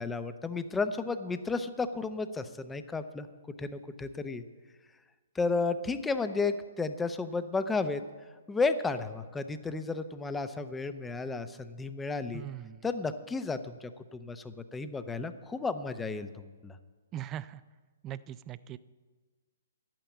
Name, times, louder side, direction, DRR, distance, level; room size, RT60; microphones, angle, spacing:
voice 1, 0.0-3.3 3.6-4.4 5.3-8.0 8.5-12.4 12.8-16.8, left 4 dB, 10° left, 10 dB, 0.7 m, -33 dB
voice 2, 12.3-12.9 17.1-17.6 18.0-18.8, right 11 dB, 25° right, 17 dB, 0.4 m, -40 dB
11.0 x 9.0 x 7.2 m, 1.4 s
hypercardioid pair, 130°, 0 cm